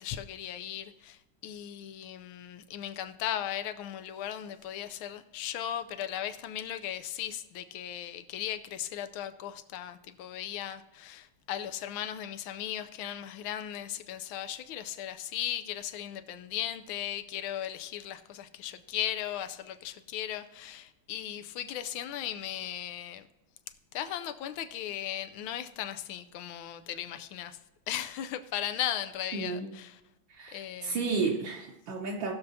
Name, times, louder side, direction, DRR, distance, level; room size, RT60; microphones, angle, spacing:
voice 1, 0.0-23.3 23.9-27.6 27.9-30.0 30.5-31.1, left 11 dB, 80° left, 1.4 m, -37 dB
voice 2, 29.3-29.7 30.3-32.3, right 4 dB, 70° right, 1.5 m, -32 dB
19.0 x 6.7 x 2.7 m
omnidirectional pair, 2.4 m